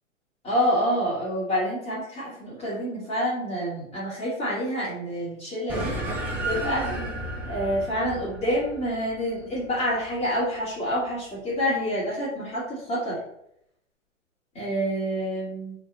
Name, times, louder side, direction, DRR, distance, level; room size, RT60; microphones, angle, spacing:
voice 1, 0.4-5.9 6.4-6.9 7.4-13.2 14.5-15.8, equal, 15° left, -8 dB, 2.4 m, -27 dB
sound 1, 5.7-10.5, right 1 dB, 5° right, 0.4 m, -33 dB
6.4 x 3.6 x 4.0 m, 0.75 s
figure-of-eight pair, 120°, 39 cm